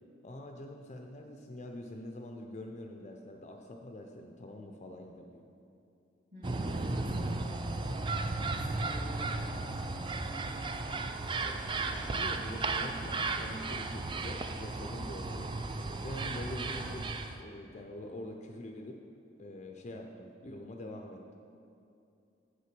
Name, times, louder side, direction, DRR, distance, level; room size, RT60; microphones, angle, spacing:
voice 1, 0.2-5.5 11.4-15.5 16.0-17.1 17.4-19.0 19.4-21.4, left 1 dB, 40° left, 3 dB, 0.5 m, -45 dB
voice 2, 6.3-8.1 8.5-10.7 14.9-15.1, equal, 45° right, -6 dB, 2.1 m, -47 dB
sound 1, 6.4-17.4, right 3 dB, 30° right, 0.4 m, -35 dB
7.9 x 5.7 x 6.0 m, 2.6 s
head